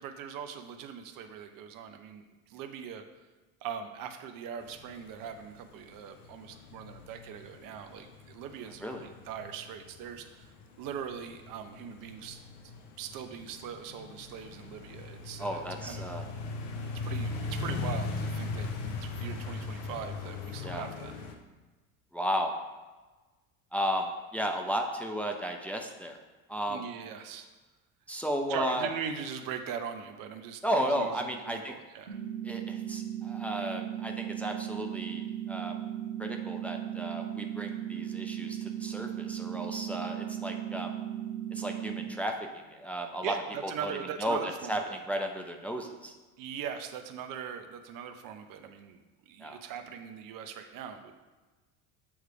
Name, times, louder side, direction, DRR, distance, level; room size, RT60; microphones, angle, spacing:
voice 1, 0.0-3.0 3.6-10.5 10.8-12.4 13.0-16.0 17.0-21.1 26.7-27.5 28.5-32.2 43.2-45.0 46.4-51.1, right 8 dB, 50° right, 7 dB, 0.7 m, -41 dB
sound 1, 4.6-21.3, left 3 dB, 65° left, 1.0 m, -40 dB
voice 2, 15.4-16.2 20.6-20.9 22.1-22.5 23.7-26.2 26.5-26.9 28.1-28.9 30.6-31.7 32.4-35.8 36.2-40.9 41.5-43.3 43.6-43.9 44.2-46.1 49.4-49.6, equal, 5° left, 2 dB, 0.6 m, -34 dB
sound 2, 32.1-42.1, right 10 dB, 90° right, 1.0 m, -37 dB
8.8 x 3.2 x 4.8 m, 1.2 s
hypercardioid pair, 70°, 43 cm